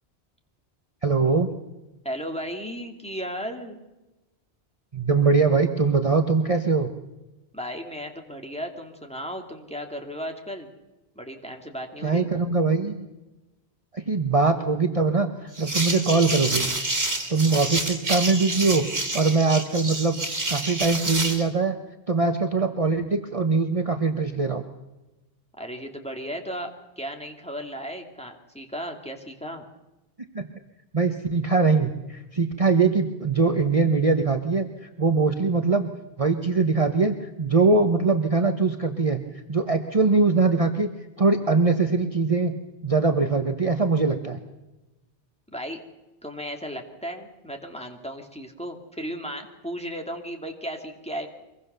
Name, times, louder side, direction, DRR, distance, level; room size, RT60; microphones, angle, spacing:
voice 1, 1.0-1.5 4.9-6.9 12.0-13.1 13.9-16.7 17.3-18.8 19.1-20.2 20.5-21.8 22.1-24.6 30.3-30.4 30.9-35.9 36.2-40.9 41.2-42.5 42.8-44.4, right 4 dB, 35° right, 5 dB, 1.2 m, -22 dB
voice 2, 2.0-3.8 7.5-10.7 11.2-12.3 25.6-29.7 45.5-45.8 46.2-51.3, equal, 5° left, 2 dB, 2.4 m, -35 dB
sound 1, 15.5-21.4, right 2 dB, 70° right, 3.0 m, -28 dB
24.5 x 21.5 x 6.8 m, 1.0 s
omnidirectional pair, 1.1 m